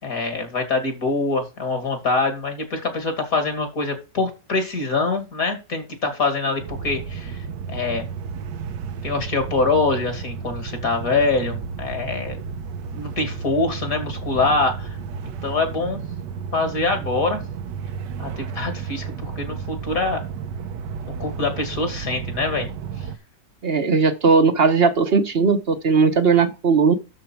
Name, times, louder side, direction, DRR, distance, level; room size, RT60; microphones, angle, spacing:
voice 1, 0.0-8.0 9.0-12.4 12.9-15.0 15.4-16.0 16.5-17.4 18.2-20.2 21.1-22.7, left 3 dB, 50° left, 2.8 m, -24 dB
sound 1, 6.6-23.2, right 6 dB, 75° right, 1.5 m, -32 dB
voice 2, 23.6-26.9, right 5 dB, 40° right, 1.0 m, -18 dB
12.5 x 4.7 x 4.5 m
omnidirectional pair, 1.9 m